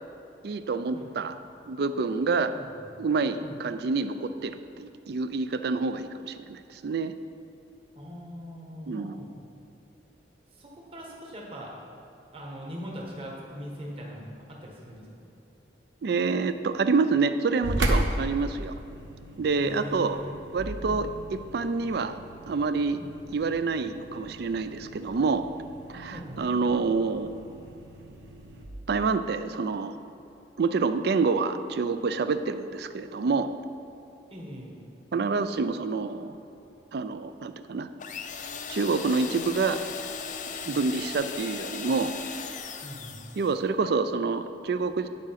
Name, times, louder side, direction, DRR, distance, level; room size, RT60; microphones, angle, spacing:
voice 1, 0.4-1.3 1.7-2.5 3.0-7.1 8.9-9.2 16.0-18.7 19.4-20.2 20.5-22.2 22.5-23.0 23.3-25.4 25.9-27.4 28.9-30.0 30.6-33.5 35.1-36.3 36.9-37.9 38.7-39.8 40.7-42.1 43.4-45.1, right 4 dB, 60° right, 11 dB, 0.4 m, -27 dB
voice 2, 7.9-9.2 10.5-11.8 12.3-15.1 19.6-20.4 20.9-21.0 23.0-23.1 26.1-26.4 34.3-34.7 40.7-40.8 42.8-43.2, equal, 30° right, -2 dB, 1.3 m, -41 dB
sound 1, 17.6-28.7, right 1 dB, 80° right, 0.9 m, -36 dB
sound 2, 38.0-43.6, left 6 dB, 45° left, 0.5 m, -38 dB
9.8 x 4.8 x 5.7 m, 2.7 s
head